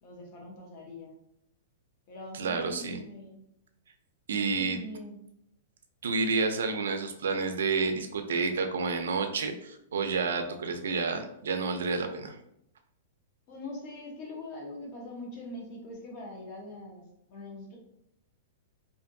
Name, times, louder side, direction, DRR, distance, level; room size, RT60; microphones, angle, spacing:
voice 1, 0.0-1.2 2.1-3.4 4.4-5.2 13.5-17.8, left 1 dB, 35° left, 0 dB, 0.8 m, -43 dB
voice 2, 2.3-3.0 4.3-4.8 6.0-12.4, right 4 dB, 90° right, 6 dB, 0.4 m, -30 dB
2.6 x 2.5 x 2.6 m, 0.77 s
hypercardioid pair, 160°, 0 cm